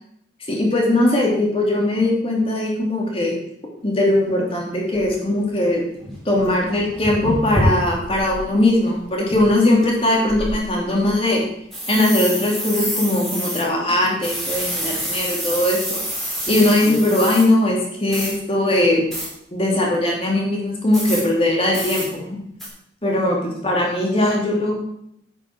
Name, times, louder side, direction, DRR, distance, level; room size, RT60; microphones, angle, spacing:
voice 1, 0.5-3.3 3.8-5.8 6.2-11.4 11.9-16.0 16.5-19.0 19.5-22.4 23.0-24.8, left 1 dB, 35° left, -1 dB, 2.8 m, -20 dB
sound 1, 4.2-4.3 4.9-5.1 5.7-5.8 6.0-8.4 8.8-8.9 9.3-9.9 10.3-11.1 11.7-13.6 14.2-17.5 18.1-18.3 19.1-19.3 20.9-21.2 21.7-22.1 22.6-22.7, equal, ahead, 3.2 m, -27 dB
10.5 x 6.1 x 6.1 m, 0.76 s
head